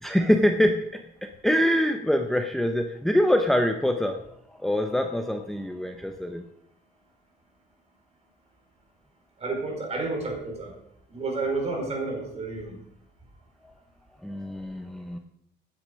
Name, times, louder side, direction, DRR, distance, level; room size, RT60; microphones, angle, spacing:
voice 1, 0.0-4.2 4.6-6.4 14.2-15.2, equal, ahead, 5 dB, 0.7 m, -24 dB
voice 2, 9.4-10.7 11.1-12.8, right 3 dB, 35° right, 1 dB, 4.6 m, -30 dB
17.0 x 9.4 x 5.2 m, 0.75 s
cardioid pair, 165°, 19 cm